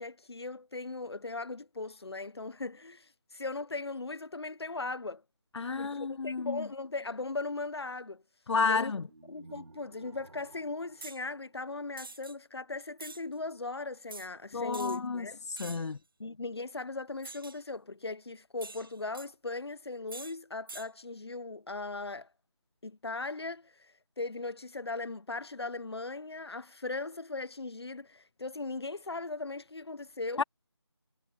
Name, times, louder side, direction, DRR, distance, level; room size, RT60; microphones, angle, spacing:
voice 1, 0.0-5.2 5.8-8.2 8.6-8.9 9.3-15.4 16.2-22.3 22.8-30.4, left 3 dB, 65° left, 1.0 m, -38 dB
voice 2, 5.5-6.6 8.5-9.0 14.5-16.0 30.4-30.5, left 4 dB, 85° left, 0.4 m, -31 dB
sound 1, 9.0-12.2, right 2 dB, 80° right, 1.6 m, -56 dB
sound 2, 11.0-11.2 12.0-12.3 13.0-13.2 14.1-14.3 14.7-15.0 15.6-15.9 17.2-17.6 18.6-19.3 20.1-20.3 20.7-20.9, right 3 dB, 55° right, 0.6 m, -45 dB
figure-of-eight pair, 170°, 14 cm